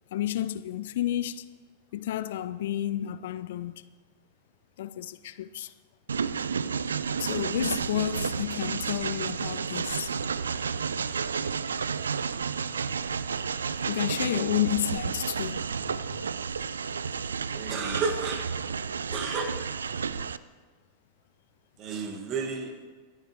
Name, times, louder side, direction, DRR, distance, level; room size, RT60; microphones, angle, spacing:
voice 1, 0.1-1.5 1.9-3.9 4.8-5.7 7.2-10.1 13.9-16.3, left 12 dB, 55° left, 0.4 m, -31 dB
Train, 6.1-20.4, right 6 dB, 70° right, 0.3 m, -31 dB
voice 2, 17.5-18.4 19.1-19.7 20.1-20.2 21.8-22.9, right 4 dB, 35° right, 1.6 m, -32 dB
25.0 x 9.6 x 2.9 m
figure-of-eight pair, 90°, 0 cm